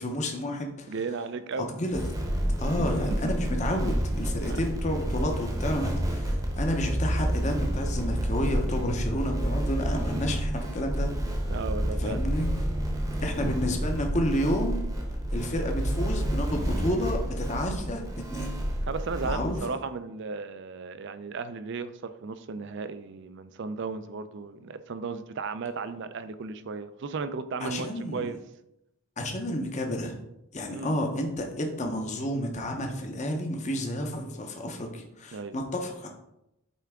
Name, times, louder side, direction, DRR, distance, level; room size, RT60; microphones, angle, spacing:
voice 1, 0.0-0.9 1.8-2.0 2.6-11.1 12.0-12.5 13.2-14.8 15.3-18.0 18.3-18.5 19.2-19.6 27.6-28.3 29.2-30.2 30.5-36.1, left 1 dB, 30° left, 3 dB, 0.7 m, -30 dB
voice 2, 0.9-1.7 2.8-3.3 3.7-3.9 4.5-4.6 9.9-10.0 11.5-12.3 18.9-28.4 30.7-31.0 35.3-35.6, right 4 dB, 55° right, 12 dB, 0.4 m, -35 dB
sound 1, 1.9-19.6, equal, 15° right, 0.8 m, -29 dB
8.2 x 3.4 x 3.5 m, 0.85 s
head